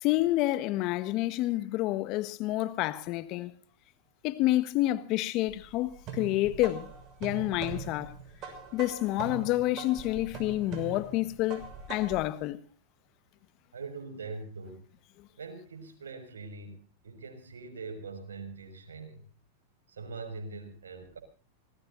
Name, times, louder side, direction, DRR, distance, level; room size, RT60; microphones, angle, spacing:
voice 1, 0.0-3.5 4.2-6.9 7.2-8.1 8.7-12.6, left 16 dB, 50° left, 1.4 m, -29 dB
sound 1, 5.5-12.3, right 6 dB, 40° right, 6.2 m, -42 dB
voice 2, 13.7-14.8 15.4-19.2 19.9-21.2, right 4 dB, 85° right, 5.8 m, -42 dB
26.5 x 19.0 x 2.7 m
hypercardioid pair, 105°, 0 cm